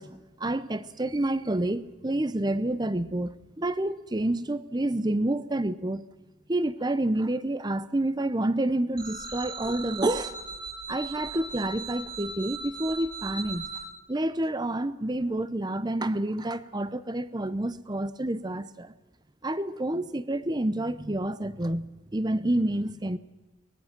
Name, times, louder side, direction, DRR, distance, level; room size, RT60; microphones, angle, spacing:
voice 1, 0.0-6.0 6.5-10.4 10.9-13.7 14.1-18.9 19.4-23.2, right 1 dB, 20° right, 0.7 m, -29 dB
sound 1, 9.0-13.8, right 4 dB, 45° right, 7.9 m, -38 dB
23.0 x 19.5 x 6.0 m
head